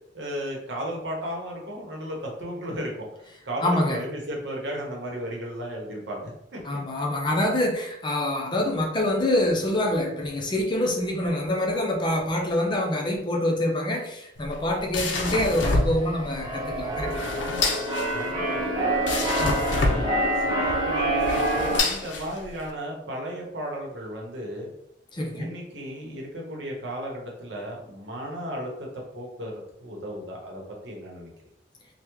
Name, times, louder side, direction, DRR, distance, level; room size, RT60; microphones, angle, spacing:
voice 1, 0.1-3.1 3.4-6.6 18.1-19.2 19.6-21.5 21.8-24.7 25.3-29.5 29.8-31.3, equal, 70° right, -1 dB, 0.9 m, -35 dB
voice 2, 3.6-4.0 6.6-17.3 19.4-19.8 25.1-25.5, left 1 dB, 25° left, 1 dB, 0.5 m, -26 dB
sound 1, 14.4-22.7, left 2 dB, 80° left, 0.5 m, -28 dB
Keyboard (musical), 15.9-21.8, right 1 dB, 25° right, 0.8 m, -27 dB
3.4 x 2.2 x 3.0 m, 0.78 s
head